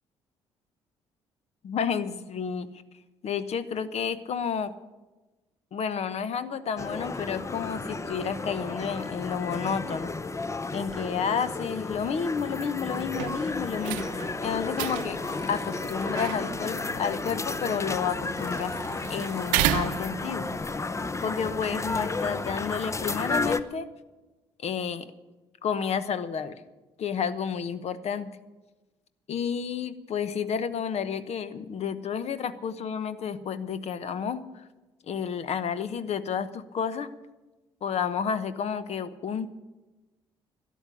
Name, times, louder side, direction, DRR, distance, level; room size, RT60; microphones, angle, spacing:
voice 1, 1.6-2.7 3.2-4.7 5.7-10.1 10.7-15.2 15.5-18.7 19.1-20.5 21.2-23.9 24.6-25.1 25.6-26.6 27.0-28.3 29.3-34.6 35.0-37.1 37.8-39.5, left 7 dB, 55° left, 14 dB, 1.1 m, -31 dB
sound 1, 6.8-23.6, left 3 dB, 20° left, 0.8 m, -33 dB
sound 2, 13.1-20.6, right 14 dB, 75° right, 0.7 m, -34 dB
13.0 x 10.5 x 9.8 m, 1.1 s
hypercardioid pair, 50°, 13 cm